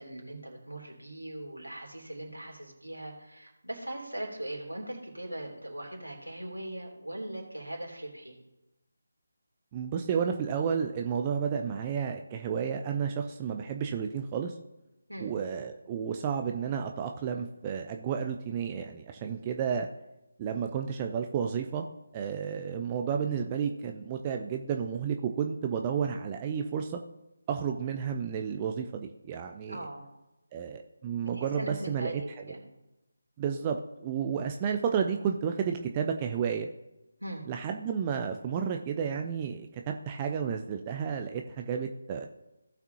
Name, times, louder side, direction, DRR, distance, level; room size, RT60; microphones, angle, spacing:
voice 1, 0.0-8.4 15.1-15.4 29.7-30.1 31.3-32.7 37.2-37.5, right 1 dB, 85° right, 0 dB, 3.0 m, -40 dB
voice 2, 9.7-14.5 15.2-19.9 20.4-21.9 22.1-27.0 27.5-29.8 30.5-32.2 32.5-32.6 33.4-36.7 37.5-42.3, right 7 dB, 20° right, 4 dB, 0.5 m, -31 dB
17.0 x 5.9 x 2.8 m, 0.96 s
figure-of-eight pair, 155°, 0 cm